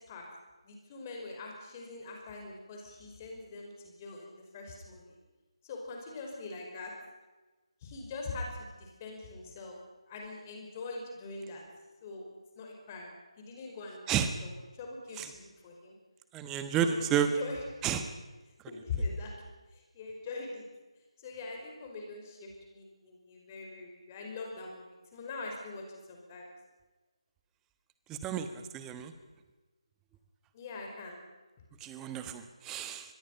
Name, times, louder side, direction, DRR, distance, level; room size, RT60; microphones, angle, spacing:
voice 1, 0.6-5.1 5.6-6.9 7.8-9.8 10.1-11.6 12.0-12.2 12.6-13.1 13.4-15.9 16.8-17.9 18.7-19.3 19.7-20.7 21.2-26.5 30.5-31.2, left 3 dB, 25° left, 1 dB, 5.3 m, -42 dB
voice 2, 16.3-17.3 17.8-18.0 28.2-28.5 28.7-29.1 31.8-33.0, right 9 dB, 10° right, 9 dB, 1.2 m, -31 dB
24.5 x 21.5 x 5.7 m, 1.2 s
figure-of-eight pair, 160°, 3 cm